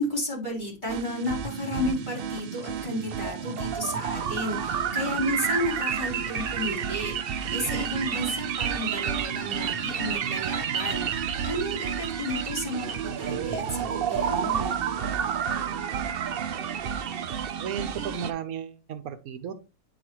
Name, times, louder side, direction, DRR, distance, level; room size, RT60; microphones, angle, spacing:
voice 1, 0.0-7.2 7.5-14.7, left 1 dB, 30° left, -6 dB, 3.8 m, -32 dB
sound 1, 0.9-18.3, right 7 dB, 60° right, 0.6 m, -30 dB
voice 2, 17.6-19.5, right 8 dB, 80° right, 11 dB, 1.1 m, -34 dB
9.4 x 4.1 x 3.0 m, 0.31 s
omnidirectional pair, 1.5 m